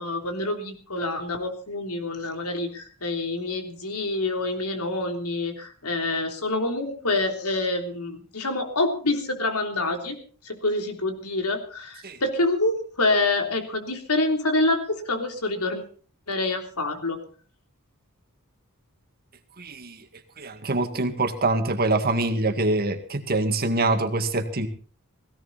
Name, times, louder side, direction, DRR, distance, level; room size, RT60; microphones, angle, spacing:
voice 1, 0.0-15.8 16.3-17.2, left 2 dB, 90° left, 4 dB, 3.4 m, -27 dB
voice 2, 19.6-20.0 20.4-24.7, right 2 dB, 45° right, 7 dB, 2.0 m, -24 dB
17.5 x 17.0 x 4.2 m, 0.41 s
head